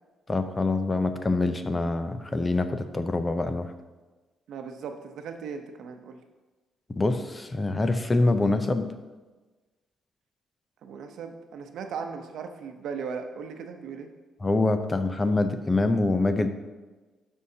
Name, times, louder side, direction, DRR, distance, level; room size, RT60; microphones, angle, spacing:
voice 1, 0.3-3.7 6.9-8.9 14.4-16.5, left 2 dB, 25° left, 9 dB, 0.6 m, -25 dB
voice 2, 4.5-6.2 10.8-14.1, right 6 dB, 75° right, 5 dB, 0.8 m, -37 dB
12.0 x 5.5 x 2.8 m, 1.2 s
cardioid pair, 90°, 0 cm